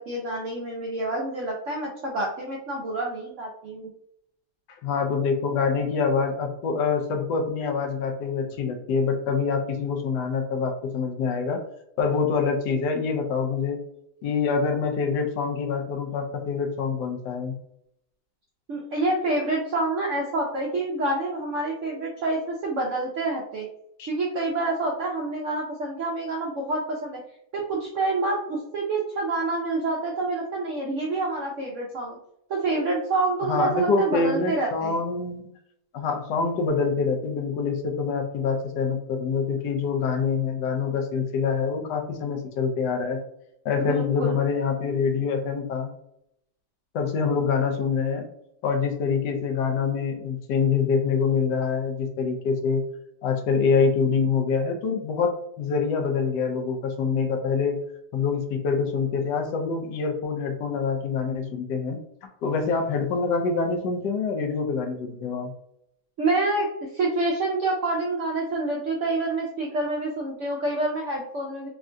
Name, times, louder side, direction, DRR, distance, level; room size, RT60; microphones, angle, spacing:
voice 1, 0.0-3.9 18.7-23.7 24.1-27.2 27.5-32.2 32.5-35.0 43.8-44.3 66.2-71.7, right 2 dB, 75° right, -2 dB, 0.7 m, -27 dB
voice 2, 4.8-11.6 12.0-13.8 14.2-17.5 24.0-24.1 33.5-35.5 35.9-43.2 43.6-45.9 46.9-48.3 48.6-52.8 53.2-57.8 58.1-62.0 62.4-65.5, left 5 dB, 75° left, 4 dB, 1.2 m, -25 dB
3.6 x 2.2 x 2.5 m, 0.76 s
omnidirectional pair, 1.9 m